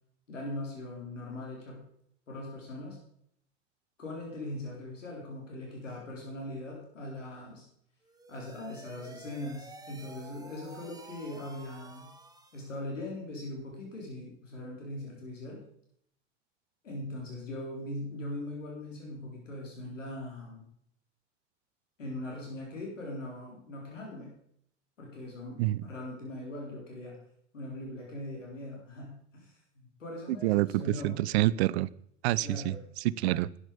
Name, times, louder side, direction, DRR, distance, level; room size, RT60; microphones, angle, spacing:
voice 1, 0.3-1.8 2.3-3.0 4.0-7.6 8.3-12.1 12.5-15.6 16.8-20.7 22.0-24.3 25.0-27.2 27.5-31.2 32.4-32.8, left 1 dB, 85° left, 3.9 m, -40 dB
sound 1, 8.0-12.8, right 2 dB, 10° right, 2.0 m, -51 dB
voice 2, 30.4-31.9 32.2-33.5, right 17 dB, 60° right, 0.6 m, -27 dB
12.0 x 9.6 x 5.1 m
hypercardioid pair, 85°, 37 cm